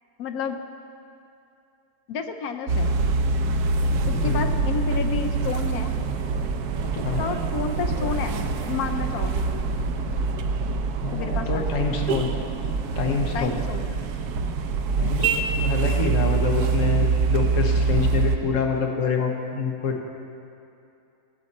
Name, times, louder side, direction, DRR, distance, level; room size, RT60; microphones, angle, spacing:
voice 1, 0.2-0.6 2.1-2.9 4.0-5.9 6.8-6.9 7.2-8.3 8.7-9.6 11.1-12.0 13.3-13.8, left 6 dB, 75° left, 7 dB, 1.1 m, -31 dB
sound 1, 2.7-18.4, right 4 dB, 85° right, 1.2 m, -25 dB
voice 2, 4.0-4.4 6.9-7.2 11.0-12.3 13.0-13.6 15.0-20.0, left 5 dB, 60° left, 1 dB, 1.4 m, -26 dB
16.0 x 7.5 x 4.1 m, 2.7 s
omnidirectional pair, 1.6 m